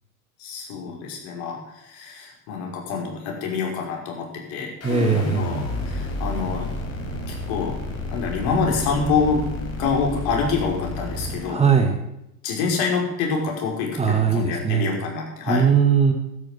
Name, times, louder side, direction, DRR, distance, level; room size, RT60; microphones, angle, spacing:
voice 1, 0.4-4.7 5.3-6.7 7.3-7.8 8.1-9.4 9.8-11.6 12.4-15.7, left 5 dB, 55° left, 0 dB, 5.5 m, -26 dB
sound 1, 4.8-11.5, left 2 dB, 35° left, 5.1 m, -30 dB
voice 2, 4.8-5.5 11.5-12.0 14.0-14.9 15.5-16.1, right 6 dB, 15° right, 5 dB, 1.9 m, -19 dB
12.5 x 10.5 x 7.6 m, 0.83 s
hypercardioid pair, 90°, 44 cm